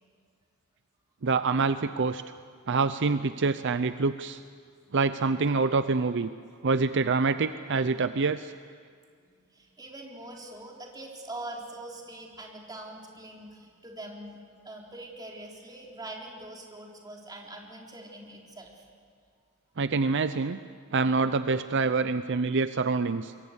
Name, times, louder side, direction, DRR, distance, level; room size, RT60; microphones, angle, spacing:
voice 1, 1.2-2.2 2.7-4.4 4.9-6.3 6.6-8.5 19.8-20.6 20.9-23.3, right 4 dB, 60° right, 11 dB, 0.6 m, -26 dB
voice 2, 9.3-14.4 14.6-18.8, right 1 dB, 20° right, -1 dB, 3.9 m, -43 dB
26.5 x 22.0 x 8.2 m, 2.1 s
head